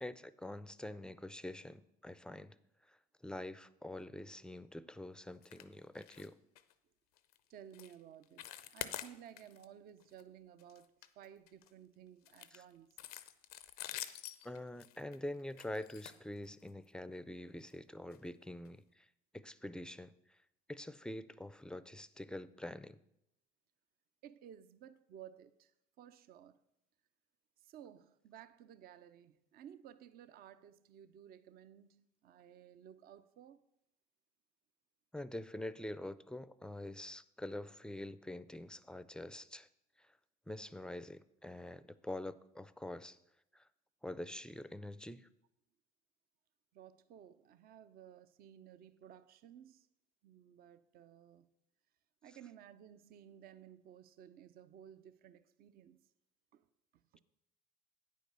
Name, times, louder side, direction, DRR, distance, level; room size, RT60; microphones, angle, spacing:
voice 1, 0.0-2.6 2.9-6.4 12.5-12.6 14.4-19.1 19.3-20.4 20.7-23.0 35.1-39.7 40.0-40.1 40.5-43.2 43.5-43.7 44.0-45.3, left 1 dB, 5° left, 0.4 m, -46 dB
sound 1, 5.4-5.7 5.9-6.3 6.5-6.7 7.2-7.4 7.7-7.9 8.2-9.6 10.0-10.2 10.6-11.7 12.2-16.8 17.6-17.7 18.1-18.2 18.6-18.7, left 13 dB, 85° left, 0.5 m, -47 dB
voice 2, 7.5-8.5 8.7-10.9 11.2-13.0 24.2-25.7 26.0-26.6 27.6-33.6 46.7-49.9 50.2-51.5 52.2-56.0 56.5-56.7 57.1-57.2, right 9 dB, 55° right, 0.5 m, -56 dB
9.2 x 5.2 x 6.7 m
hypercardioid pair, 70°, 19 cm